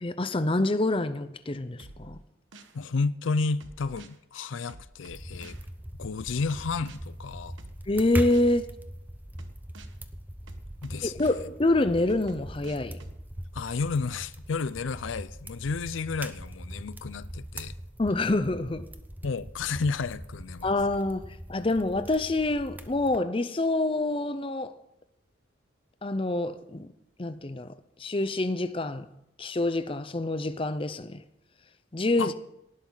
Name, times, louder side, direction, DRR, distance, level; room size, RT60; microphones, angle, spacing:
voice 1, 0.0-2.2 7.9-8.7 11.0-13.0 18.0-18.9 20.6-24.7 26.0-26.9 27.2-27.7 28.0-29.1 29.4-31.2 31.9-32.3, left 2 dB, 30° left, 0.6 m, -27 dB
sound 1, 1.8-2.8 3.6-4.2 4.7-5.7 6.5-7.0 7.6-8.5 9.4-9.9 10.5-11.4 12.1-13.2, right 2 dB, 80° right, 1.2 m, -48 dB
voice 2, 2.7-5.6 6.0-7.6 10.8-11.1 13.5-17.7 19.2-20.7 32.2-32.3, left 4 dB, 80° left, 0.5 m, -31 dB
sound 2, 5.1-23.2, right 1 dB, 10° right, 0.7 m, -41 dB
18.0 x 11.5 x 4.0 m
head